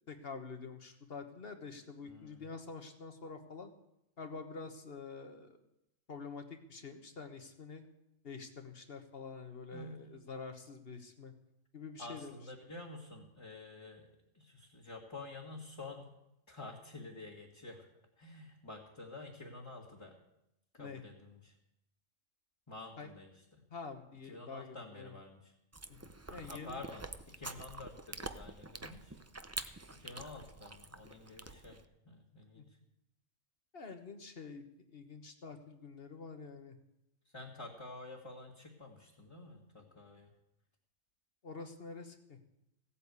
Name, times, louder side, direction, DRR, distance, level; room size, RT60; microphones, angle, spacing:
voice 1, 0.1-3.7 4.2-5.6 6.1-7.8 8.2-11.3 11.7-12.3 20.8-21.0 23.0-23.1 23.7-25.1 25.9-26.8 32.5-32.7 33.7-36.8 41.4-42.4, left 4 dB, 50° left, 6 dB, 1.5 m, -47 dB
voice 2, 2.0-2.4 9.7-10.1 12.0-16.1 16.5-17.8 18.2-20.1 20.7-21.5 22.7-23.6 24.2-25.5 26.5-29.2 29.9-32.8 37.2-40.3, left 2 dB, 20° left, -2 dB, 1.7 m, -49 dB
Chewing mastication, 25.7-31.9, right 2 dB, 20° right, 0.4 m, -47 dB
16.0 x 8.5 x 8.2 m, 0.85 s
omnidirectional pair, 1.3 m